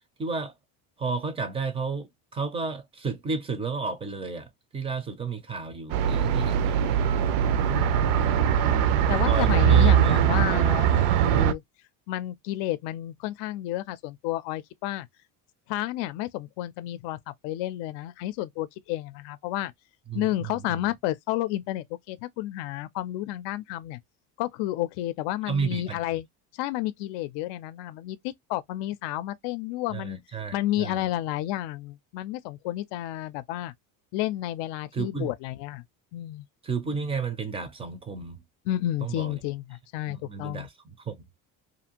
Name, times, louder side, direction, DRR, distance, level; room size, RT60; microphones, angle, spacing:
voice 1, 0.2-0.5 1.0-2.1 2.3-7.0 9.2-10.2 20.1-20.9 25.5-26.0 29.9-31.1 34.9-35.3 36.6-38.4 39.0-39.4 40.1-41.2, right 5 dB, 15° right, 0.3 m, -32 dB
sound 1, 5.9-11.5, right 9 dB, 75° right, 0.6 m, -21 dB
voice 2, 7.7-8.5 9.1-11.6 12.1-15.1 15.7-17.2 17.4-19.7 20.1-24.0 24.4-26.3 26.6-30.2 30.5-33.7 34.1-35.8 36.1-36.4 38.7-40.7, left 14 dB, 85° left, 0.5 m, -31 dB
2.6 x 2.5 x 2.8 m
cardioid pair, 170°, 42 cm